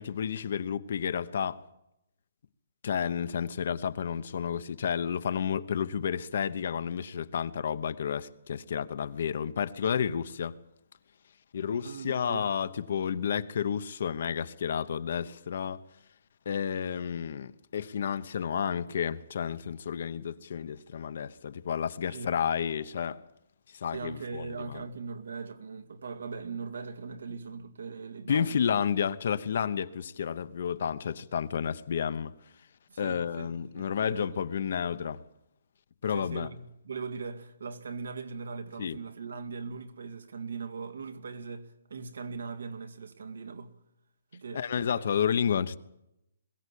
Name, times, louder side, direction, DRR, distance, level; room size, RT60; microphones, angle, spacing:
voice 1, 0.0-1.6 2.8-10.5 11.5-15.8 16.4-23.2 23.7-24.8 28.3-32.3 33.0-35.2 36.0-36.5 38.8-39.0 44.5-45.8, left 7 dB, 50° left, 1.0 m, -31 dB
voice 2, 11.8-12.5 22.1-22.4 23.9-28.7 32.9-34.7 36.1-43.7 44.3-45.2, right 5 dB, 85° right, 2.3 m, -40 dB
22.0 x 16.0 x 8.5 m
hypercardioid pair, 170°, 0 cm